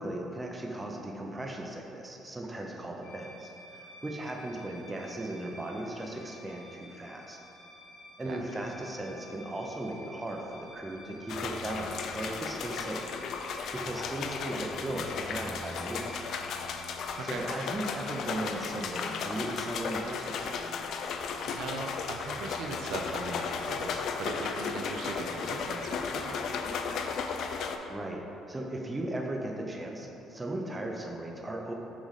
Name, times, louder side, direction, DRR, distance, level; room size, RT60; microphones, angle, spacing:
voice 1, 0.0-7.4 8.2-16.2 17.2-20.4 27.5-31.7, right 1 dB, 15° right, 0 dB, 0.5 m, -37 dB
sound 1, 3.0-17.4, equal, 85° left, 0.9 m, -52 dB
voice 2, 8.2-8.6 17.2-17.4 21.5-26.4, right 3 dB, 70° right, 2 dB, 0.5 m, -39 dB
sound 2, 11.3-27.8, left 5 dB, 60° left, 0.3 m, -35 dB
6.0 x 3.9 x 4.0 m, 3.0 s
cardioid pair, 135°, 0 cm